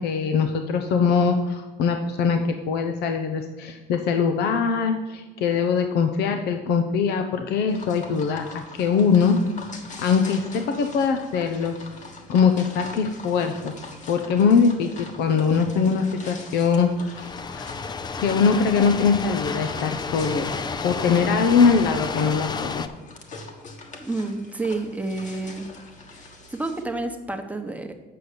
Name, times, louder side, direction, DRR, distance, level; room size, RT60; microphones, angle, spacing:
voice 1, 0.0-9.4 10.0-11.8 12.3-13.7 14.1-17.7 18.2-20.4 20.8-22.9, left 5 dB, 80° left, 6 dB, 0.7 m, -22 dB
sound 1, 7.7-26.8, left 3 dB, 45° left, 1.4 m, -43 dB
sound 2, 17.1-22.9, left 5 dB, 25° left, 0.5 m, -31 dB
voice 2, 24.0-25.7 26.5-27.9, right 2 dB, 10° right, 5 dB, 1.0 m, -29 dB
7.6 x 5.4 x 6.7 m, 1.3 s
cardioid pair, 110°, 17 cm